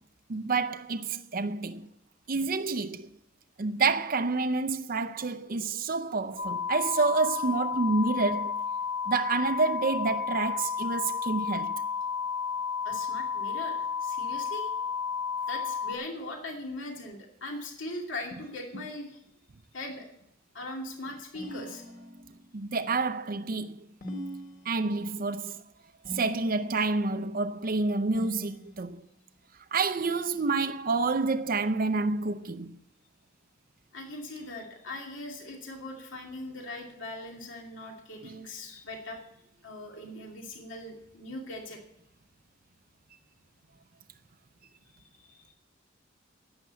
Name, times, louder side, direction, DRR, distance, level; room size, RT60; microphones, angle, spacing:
voice 1, 0.3-1.9 2.3-3.1 3.6-8.6 9.1-11.8 22.5-23.8 24.7-25.6 26.1-29.0 29.7-32.8 38.2-38.4, right 3 dB, 45° right, 0.6 m, -28 dB
sound 1, 6.4-15.9, left 6 dB, 80° left, 4.1 m, -32 dB
voice 2, 12.8-14.7 15.5-19.2 19.7-20.1 20.5-21.8 33.9-39.2 39.6-41.8 45.0-45.4, left 2 dB, 65° left, 2.6 m, -40 dB
sound 2, 21.3-22.5 24.0-25.1 26.0-26.9 28.1-29.1, equal, 45° left, 2.6 m, -42 dB
11.5 x 8.8 x 8.2 m
head